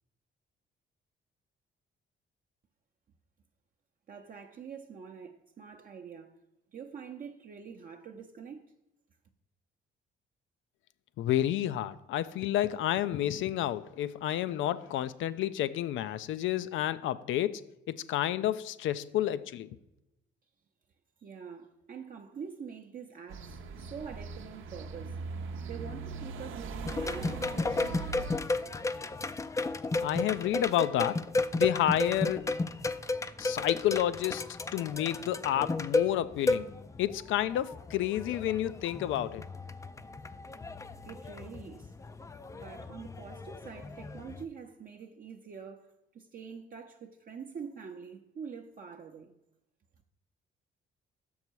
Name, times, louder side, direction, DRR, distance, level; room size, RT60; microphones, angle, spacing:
voice 1, 4.1-6.3 6.7-8.6 21.2-25.2 25.6-28.2 41.0-41.9 42.5-49.3, right 6 dB, 45° right, 0.6 m, -45 dB
voice 2, 11.2-17.6 17.9-19.7 30.0-31.2 31.6-32.5 33.4-34.4 34.7-36.7 37.0-39.4, left 12 dB, 75° left, 0.4 m, -30 dB
sound 1, 23.3-28.4, right 4 dB, 80° right, 0.7 m, -40 dB
sound 2, 26.9-44.4, left 3 dB, 15° left, 0.3 m, -34 dB
6.6 x 5.5 x 4.6 m
cardioid pair, 90°, 20 cm